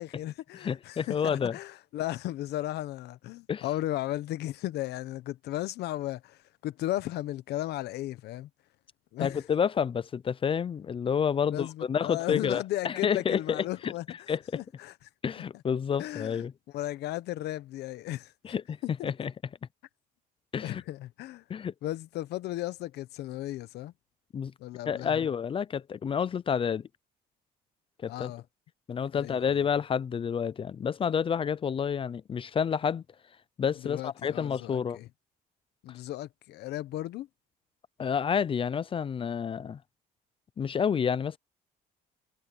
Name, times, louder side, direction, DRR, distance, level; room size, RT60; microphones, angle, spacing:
voice 1, 0.0-8.5 9.1-9.4 11.5-14.3 14.6-14.9 16.0-16.5 16.7-18.5 19.0-19.1 20.6-21.4 21.8-23.9 24.6-25.2 28.1-28.4 29.1-29.6 33.8-35.1 35.8-37.3, left 15 dB, 80° left, 1.1 m, -35 dB
voice 2, 0.6-1.6 3.5-3.6 9.2-13.9 14.3-14.6 15.2-16.5 18.4-18.8 19.0-19.3 20.5-20.8 21.5-21.7 24.3-24.5 24.9-26.9 28.0-28.3 28.9-33.0 33.6-35.0 38.0-39.8 40.6-41.4, left 7 dB, 30° left, 0.5 m, -29 dB
cardioid pair, 110°, 17 cm